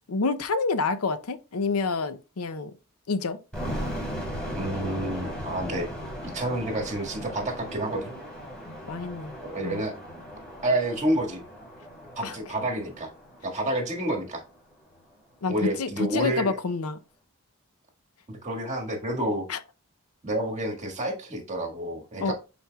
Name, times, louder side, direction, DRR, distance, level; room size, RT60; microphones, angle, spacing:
voice 1, 0.1-2.7 3.1-3.4 8.7-9.3 9.6-9.8 12.2-12.4 15.4-17.0 19.5-19.6 22.2-22.3, left 4 dB, 80° left, 0.6 m, -28 dB
sound 1, 3.5-14.4, equal, 5° left, 3.6 m, -37 dB
voice 2, 4.5-5.9 6.2-8.1 9.4-9.9 10.6-11.4 12.2-13.1 13.4-14.4 15.5-16.6 18.3-19.5 20.2-22.3, right 1 dB, 35° right, 1.8 m, -29 dB
10.5 x 4.3 x 2.3 m
head